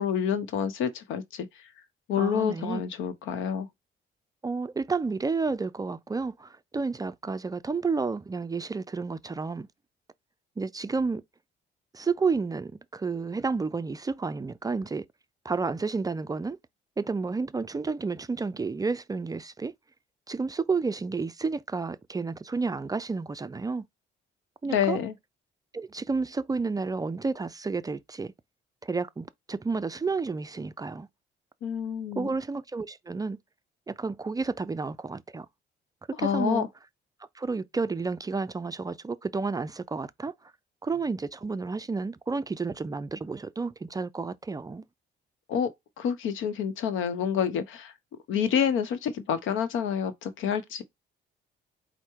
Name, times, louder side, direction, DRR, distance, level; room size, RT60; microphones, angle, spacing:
voice 1, 0.0-1.5 2.1-3.7 24.7-25.1 31.6-32.3 36.2-36.7 45.5-45.7 46.0-47.9 48.3-50.8, left 8 dB, 90° left, 0.8 m, -28 dB
voice 2, 2.2-2.8 4.4-9.7 10.6-11.2 11.9-15.0 15.4-16.6 17.0-19.7 20.3-23.8 24.6-25.0 25.7-28.3 28.8-31.1 32.2-33.4 33.9-35.5 36.2-36.7 37.4-40.3 40.8-44.8, right 4 dB, 20° right, 0.3 m, -31 dB
4.6 x 2.1 x 4.4 m
cardioid pair, 90°, 20 cm